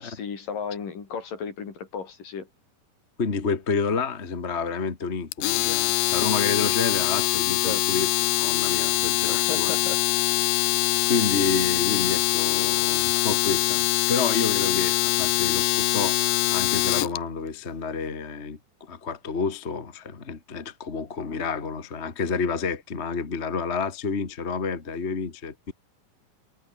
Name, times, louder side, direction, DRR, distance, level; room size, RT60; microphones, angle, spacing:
voice 1, 0.0-2.5 7.6-7.8 9.3-10.0, left 6 dB, 65° left, 5.5 m, -34 dB
voice 2, 3.2-8.1 8.4-9.7 11.0-16.2 16.5-25.7, left 5 dB, 25° left, 1.6 m, -29 dB
Domestic sounds home sounds, 5.3-17.2, left 21 dB, 80° left, 2.1 m, -23 dB
omnidirectional pair, 4.2 m